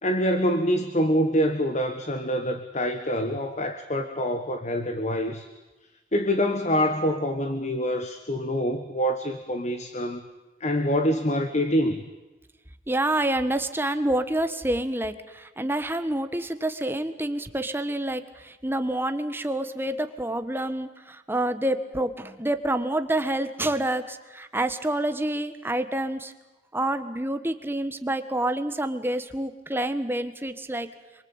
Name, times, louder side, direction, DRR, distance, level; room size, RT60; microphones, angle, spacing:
voice 1, 0.0-5.5 6.1-10.2 10.6-12.1, equal, 40° left, 8 dB, 1.5 m, -25 dB
voice 2, 12.9-26.3 26.7-30.9, right 1 dB, 15° right, 9 dB, 1.5 m, -28 dB
27.0 x 23.5 x 9.0 m, 1.1 s
head